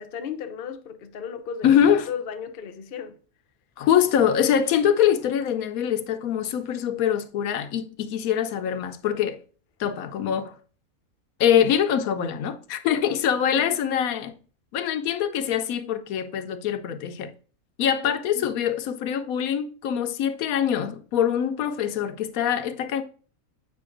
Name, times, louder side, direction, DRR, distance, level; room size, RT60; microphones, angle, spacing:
voice 1, 0.0-3.2 12.9-13.2 17.8-18.2, left 7 dB, 50° left, 0.7 m, -36 dB
voice 2, 1.6-2.1 3.8-9.4 9.8-10.6 11.4-14.4 14.7-17.3 17.8-23.0, left 9 dB, 80° left, 1.0 m, -24 dB
8.2 x 5.2 x 2.5 m
omnidirectional pair, 1.5 m